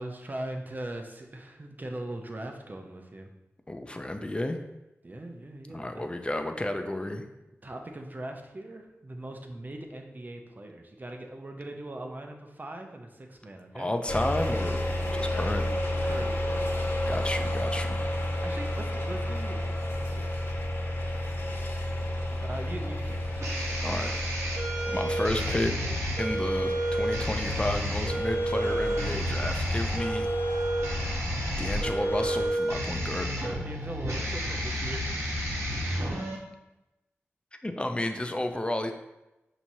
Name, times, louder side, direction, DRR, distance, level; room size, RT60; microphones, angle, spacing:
voice 1, 0.0-3.3 5.0-6.1 7.6-13.9 16.0-17.0 18.4-20.6 21.1-21.3 22.4-23.6 33.6-35.3, right 1 dB, 35° right, 3 dB, 0.7 m, -40 dB
voice 2, 3.7-4.6 5.7-7.3 13.7-14.8 15.1-15.7 17.0-18.0 23.8-24.2 24.9-25.7 26.2-30.3 31.6-33.3 37.6-38.9, left 1 dB, 20° left, 6 dB, 0.5 m, -31 dB
sound 1, 14.1-32.5, left 1 dB, 60° left, 1.0 m, -31 dB
sound 2, 21.9-36.4, right 1 dB, 70° right, 1.0 m, -31 dB
5.8 x 2.9 x 2.7 m, 0.98 s
cardioid pair, 40°, 5 cm